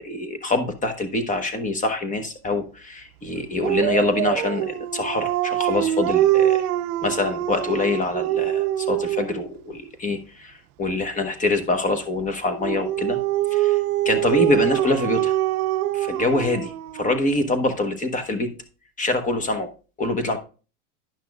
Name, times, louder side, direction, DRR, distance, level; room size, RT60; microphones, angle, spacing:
voice 1, 0.0-6.7 7.0-13.2 13.5-13.8 14.0-15.3 15.9-18.5 19.0-19.7 20.0-20.4, left 2 dB, 15° left, 8 dB, 1.0 m, -25 dB
Dog, 3.6-9.4 12.6-17.2, right 14 dB, 90° right, 0.6 m, -24 dB
10.5 x 5.9 x 2.4 m, 0.34 s
supercardioid pair, 130°, 44 cm